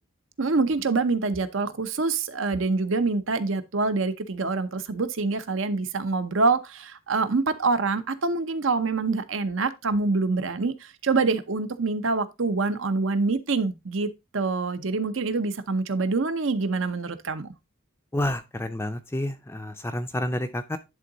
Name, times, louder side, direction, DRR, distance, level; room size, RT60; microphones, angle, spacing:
voice 1, 0.4-17.5, right 3 dB, 60° right, 0.8 m, -26 dB
voice 2, 18.1-20.8, left 1 dB, 10° left, 0.5 m, -29 dB
11.0 x 3.8 x 3.9 m
head